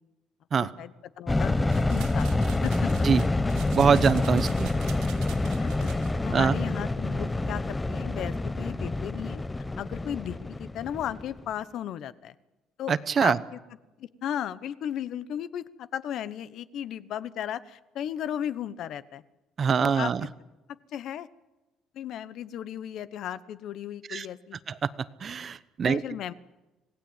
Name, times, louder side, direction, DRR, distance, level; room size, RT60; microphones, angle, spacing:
voice 1, 0.6-1.5 1.9-2.3 2.6-2.9 5.6-5.9 6.2-9.4 9.8-12.3 12.8-13.6 14.0-19.2 19.8-20.1 20.9-21.3 21.9-24.6 25.8-26.3, left 10 dB, 55° left, 15 dB, 1.1 m, -35 dB
sound 1, 1.3-11.5, left 2 dB, 10° left, 0.8 m, -27 dB
sound 2, 1.7-6.1, right 12 dB, 85° right, 3.7 m, -46 dB
voice 2, 3.7-4.7 6.3-6.6 12.9-13.4 19.6-20.2 24.1-24.3 24.7-24.9 25.2-26.0, right 6 dB, 30° right, 15 dB, 0.9 m, -23 dB
26.5 x 18.5 x 9.0 m, 1.0 s
cardioid pair, 155°, 0 cm